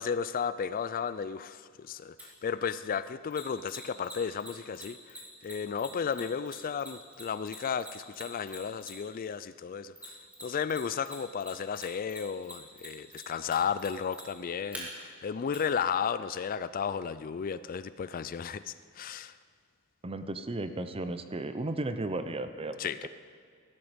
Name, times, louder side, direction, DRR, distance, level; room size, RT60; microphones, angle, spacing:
voice 1, 0.0-19.4 22.8-23.1, left 7 dB, 40° left, 15 dB, 0.3 m, -34 dB
Mechanisms, 2.2-2.3 3.3-9.2 10.0-10.8 11.0-14.8 15.5-15.6, equal, 5° right, 2.8 m, -45 dB
voice 2, 20.0-22.9, right 2 dB, 25° right, 10 dB, 0.7 m, -34 dB
16.5 x 12.5 x 5.1 m, 2.1 s
head